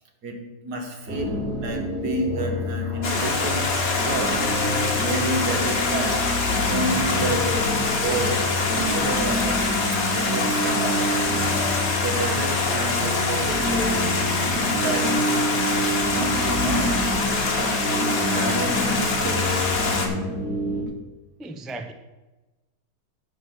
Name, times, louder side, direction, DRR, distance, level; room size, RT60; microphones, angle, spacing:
voice 1, 0.2-9.7 10.1-11.2 12.0-15.7 16.1-17.2 17.6-19.7, right 1 dB, 75° right, 2.1 m, -30 dB
sound 1, 1.1-20.8, left 1 dB, 50° right, 2.4 m, -28 dB
Stream, 3.0-20.1, left 3 dB, 60° left, 2.0 m, -25 dB
voice 2, 21.4-21.9, right 2 dB, ahead, 0.4 m, -35 dB
9.1 x 6.1 x 7.0 m
omnidirectional pair, 1.7 m